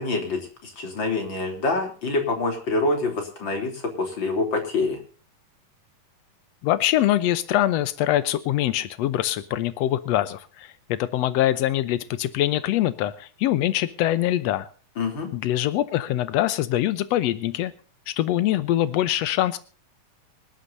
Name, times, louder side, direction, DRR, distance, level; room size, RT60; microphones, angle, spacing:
voice 1, 0.0-5.0 15.0-15.3, left 3 dB, 35° left, 4 dB, 3.7 m, -26 dB
voice 2, 6.6-14.7 15.3-17.7 18.1-19.6, left 13 dB, 80° left, 14 dB, 1.5 m, -23 dB
25.5 x 11.5 x 2.7 m, 0.38 s
omnidirectional pair, 3.9 m